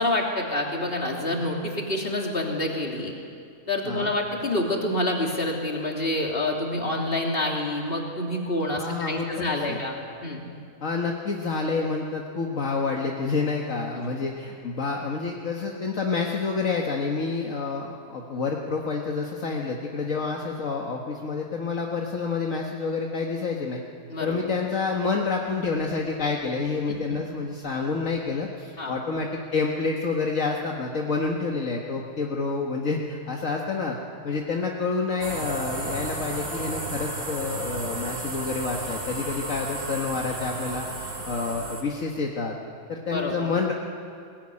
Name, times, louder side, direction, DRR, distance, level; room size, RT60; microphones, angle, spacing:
voice 1, 0.0-3.1 3.7-9.9 10.2-10.4 14.0-14.1 24.1-24.4 26.9-27.2 28.8-28.9 43.1-43.5, left 1 dB, 40° left, 0 dB, 3.2 m, -27 dB
voice 2, 8.8-9.8 10.8-23.8 24.2-34.0 34.2-42.6 42.9-43.7, left 4 dB, 65° left, 0 dB, 1.9 m, -28 dB
sound 1, 35.2-41.8, right 2 dB, 65° right, 3.8 m, -33 dB
21.5 x 18.5 x 9.9 m, 2.4 s
omnidirectional pair, 1.5 m